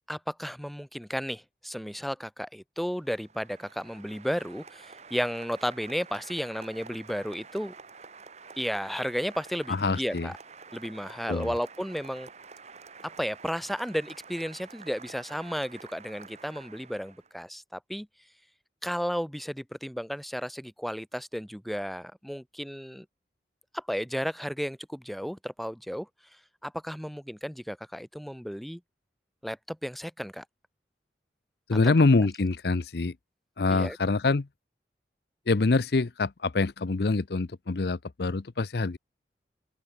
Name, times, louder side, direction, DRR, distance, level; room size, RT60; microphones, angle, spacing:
voice 1, 0.1-7.7 8.6-10.3 10.7-12.3 13.2-18.1 18.8-23.0 23.7-26.1 26.6-28.8 29.4-30.4 31.8-31.9 33.7-34.0, equal, ahead, 1.0 m, -33 dB
Applause, 2.9-17.3, right 5 dB, 40° right, 1.9 m, -49 dB
voice 2, 9.7-10.3 11.3-11.5 31.7-33.1 33.6-34.5 35.5-39.0, left 3 dB, 60° left, 0.6 m, -25 dB
open air
head